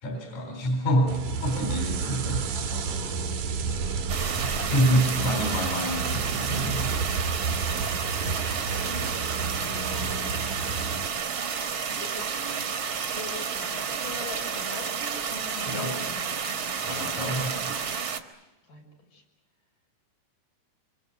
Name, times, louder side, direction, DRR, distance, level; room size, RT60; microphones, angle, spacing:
voice 1, 0.0-2.8 4.3-6.9 15.7-16.0 16.8-17.9, equal, 60° left, 4 dB, 4.9 m, -27 dB
sound 1, 1.1-11.1, right 4 dB, 75° right, 3.4 m, -31 dB
voice 2, 2.7-3.9 4.5-4.8 5.1-5.8 6.8-7.1 7.9-8.5 8.8-9.1 9.6-10.4 12.0-12.6 13.1-16.3 18.6-18.8 19.1-19.2, left 4 dB, 80° left, 0 dB, 8.1 m, -43 dB
sound 2, 4.1-18.2, right 6 dB, 45° right, 2.0 m, -31 dB
26.5 x 26.0 x 8.2 m, 1.0 s
omnidirectional pair, 3.7 m